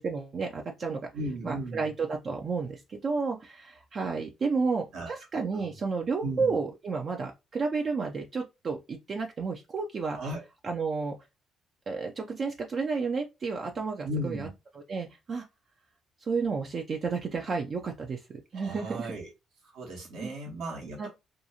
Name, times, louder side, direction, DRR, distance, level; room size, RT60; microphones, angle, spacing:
voice 1, 0.0-1.1 1.4-10.2 10.6-11.2 11.9-14.5 14.9-15.5 16.2-18.2 18.5-19.1 20.2-20.3 21.0-21.1, right 4 dB, 50° right, 0.4 m, -31 dB
voice 2, 1.1-1.9 4.9-5.1 5.5-5.7 6.2-6.6 10.1-10.4 14.0-14.5 18.5-19.3 19.7-21.1, right 1 dB, 70° right, 1.1 m, -35 dB
2.5 x 2.3 x 2.7 m
hypercardioid pair, 55°, 0 cm